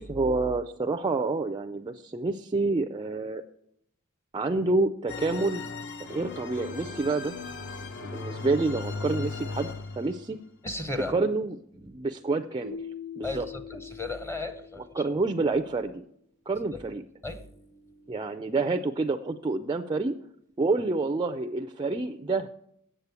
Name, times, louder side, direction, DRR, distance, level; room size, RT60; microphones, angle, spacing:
voice 1, 0.0-3.4 4.3-5.6 6.1-7.4 8.0-10.4 11.1-11.6 11.8-12.8 13.2-13.5 14.9-16.0 16.5-17.0 18.1-20.1 20.6-22.5, right 3 dB, 20° right, 9 dB, 0.3 m, -28 dB
sound 1, 5.1-10.3, left 4 dB, 55° left, 0.8 m, -37 dB
voice 2, 10.6-11.1 13.2-14.8 17.2-18.1, left 2 dB, 10° left, 9 dB, 0.7 m, -35 dB
Keyboard (musical), 12.6-15.4, left 6 dB, 90° left, 4.3 m, -42 dB
8.2 x 7.4 x 8.0 m, 0.75 s
head